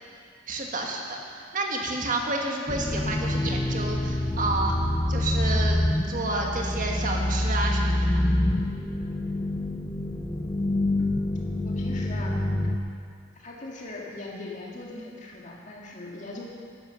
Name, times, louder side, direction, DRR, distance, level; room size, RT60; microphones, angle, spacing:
voice 1, 0.5-4.8 5.1-8.3, right 2 dB, 45° right, 0 dB, 1.5 m, -30 dB
sound 1, 2.7-12.8, left 1 dB, 20° left, 0.6 m, -26 dB
voice 2, 11.6-12.4 13.4-16.4, left 2 dB, 40° left, -2 dB, 2.0 m, -40 dB
11.5 x 10.5 x 6.9 m, 2.2 s
head